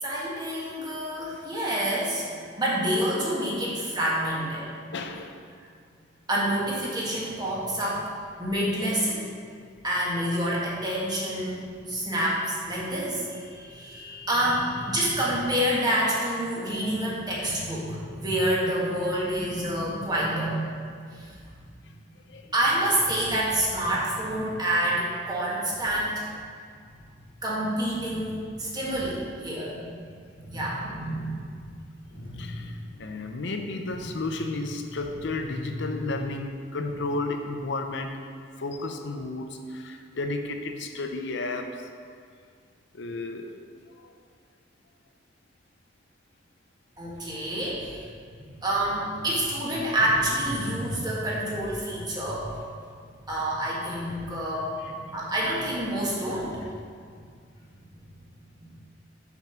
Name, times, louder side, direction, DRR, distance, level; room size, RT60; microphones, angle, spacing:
voice 1, 0.0-4.7 6.3-9.3 9.8-21.8 22.5-26.3 27.4-30.0 30.4-31.7 32.1-32.7 33.9-34.0 47.0-48.1 48.4-52.6 53.3-56.6 57.0-57.1 57.9-58.0 58.6-58.7, right 1 dB, 20° right, -6 dB, 1.6 m, -28 dB
voice 2, 4.9-5.4 22.3-22.5 32.1-38.2 38.6-41.8 42.9-43.5 43.9-44.1 55.0-55.1 56.5-56.6, left 2 dB, 70° left, 5 dB, 0.7 m, -33 dB
5.9 x 5.4 x 5.9 m, 2.1 s
head